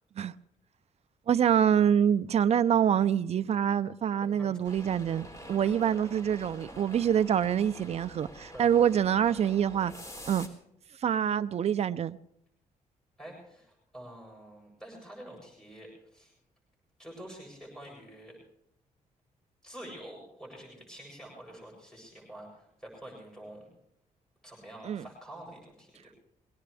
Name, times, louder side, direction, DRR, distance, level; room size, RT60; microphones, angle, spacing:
voice 1, 1.3-9.9 10.3-10.5 11.0-12.2 24.8-25.0, right 9 dB, 50° right, 0.6 m, -26 dB
sound 1, 4.6-10.5, equal, 20° left, 4.0 m, -47 dB
voice 2, 13.2-16.3 17.0-18.4 19.6-23.7 24.4-26.2, right 1 dB, 5° left, 7.5 m, -47 dB
22.0 x 18.5 x 3.4 m
cardioid pair, 130°, 14 cm